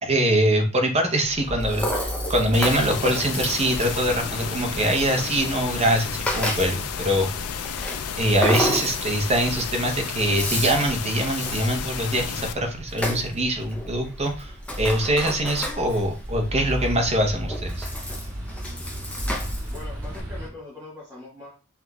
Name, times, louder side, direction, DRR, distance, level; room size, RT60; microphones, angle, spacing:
voice 1, 0.0-7.3 8.2-17.9, right 1 dB, 30° right, 3 dB, 0.7 m, -23 dB
Rattle (instrument), 1.2-20.2, left 1 dB, 5° left, 0.5 m, -33 dB
sound 1, 1.3-20.5, equal, 75° right, 2.2 m, -37 dB
sound 2, 2.5-12.5, left 8 dB, 85° left, 0.4 m, -32 dB
voice 2, 19.7-21.5, left 3 dB, 10° right, -8 dB, 1.3 m, -41 dB
5.7 x 3.0 x 2.3 m, 0.33 s
head